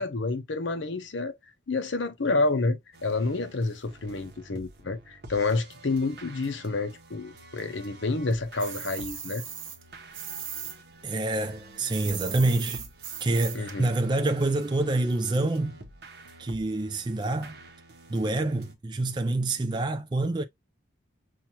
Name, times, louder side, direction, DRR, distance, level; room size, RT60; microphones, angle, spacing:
voice 1, 0.0-1.3 1.7-9.4 13.5-13.9, left 3 dB, 70° left, 0.7 m, -29 dB
sound 1, 2.9-18.7, right 2 dB, 55° right, 0.8 m, -49 dB
sound 2, 8.6-10.8 11.0-13.7, right 8 dB, 85° right, 1.1 m, -38 dB
voice 2, 11.0-12.9 13.2-15.8 16.4-17.6 18.1-20.4, right 2 dB, 25° right, 0.3 m, -27 dB
5.9 x 2.3 x 2.8 m
head